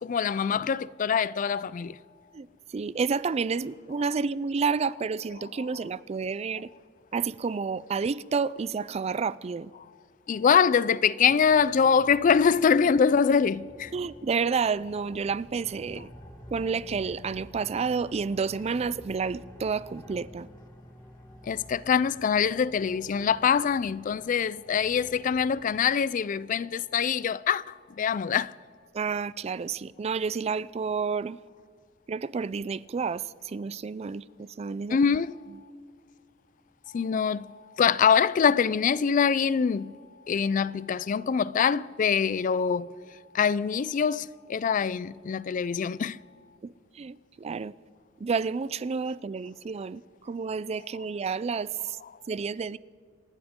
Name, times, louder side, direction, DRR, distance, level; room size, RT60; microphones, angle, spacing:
voice 1, 0.0-1.9 10.3-13.9 21.5-27.6 28.0-28.5 34.9-35.3 36.9-37.5 37.8-39.9 40.3-42.9 43.3-46.2, left 6 dB, 40° left, 0.3 m, -24 dB
voice 2, 2.3-6.7 7.1-9.7 13.9-16.1 16.5-20.5 28.9-31.4 32.1-35.0 46.6-47.7 48.2-52.0 52.3-52.8, right 5 dB, 35° right, 0.3 m, -30 dB
sound 1, 11.2-25.9, equal, 20° left, 2.1 m, -50 dB
28.0 x 12.0 x 3.7 m
head